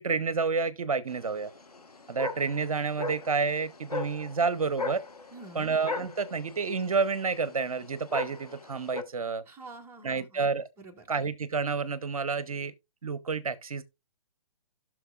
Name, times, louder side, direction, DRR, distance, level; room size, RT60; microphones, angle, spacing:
voice 1, 0.0-1.5 2.1-5.0 5.5-9.4 10.0-10.7 11.1-12.7 13.0-13.8, right 4 dB, 70° right, 0.7 m, -29 dB
sound 1, 1.1-9.0, left 3 dB, 85° left, 1.2 m, -38 dB
voice 2, 5.3-5.7 9.4-10.5 10.8-11.1, right 2 dB, 10° right, 1.2 m, -47 dB
17.0 x 6.1 x 2.4 m
figure-of-eight pair, 130°, 19 cm